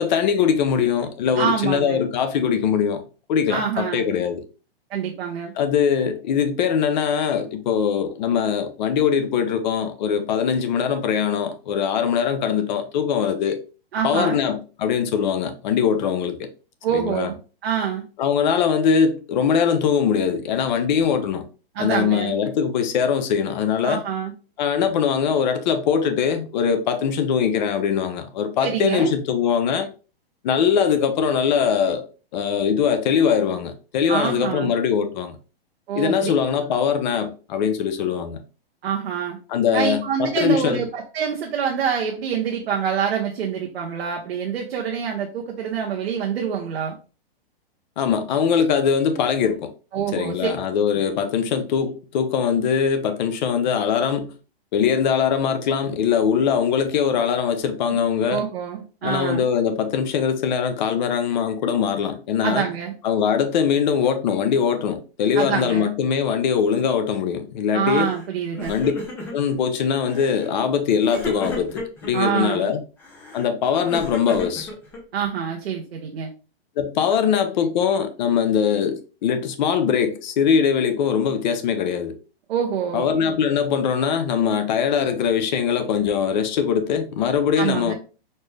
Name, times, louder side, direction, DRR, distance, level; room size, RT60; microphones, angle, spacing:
voice 1, 0.0-3.0 3.3-4.4 5.6-13.6 14.0-16.5 16.9-17.3 18.2-21.4 21.8-24.0 24.6-29.9 30.4-32.1 32.3-35.4 36.0-38.4 39.5-40.8 48.0-49.7 50.1-54.3 54.7-58.4 59.0-62.7 63.0-68.1 68.7-68.9 69.3-72.8 73.3-74.7 76.8-82.2 82.9-87.9, left 7 dB, 45° left, 0.6 m, -22 dB
voice 2, 1.4-2.0 3.5-4.0 4.9-5.5 13.9-14.4 16.8-17.4 17.6-18.0 21.7-22.3 23.8-24.3 28.6-29.1 34.1-34.7 35.9-36.3 38.8-39.4 39.7-47.0 49.9-50.3 50.9-51.0 58.3-59.4 62.4-62.9 65.4-65.9 67.7-68.7 72.1-72.7 75.1-76.3 82.5-83.1 87.6-87.9, right 7 dB, 75° right, 0.9 m, -26 dB
Crying sobbing, 67.9-68.3 68.5-69.6 70.1-70.5 71.1-72.1 73.0-75.2, left 1 dB, 5° left, 0.3 m, -34 dB
4.3 x 2.1 x 3.2 m
hypercardioid pair, 145°, 31 cm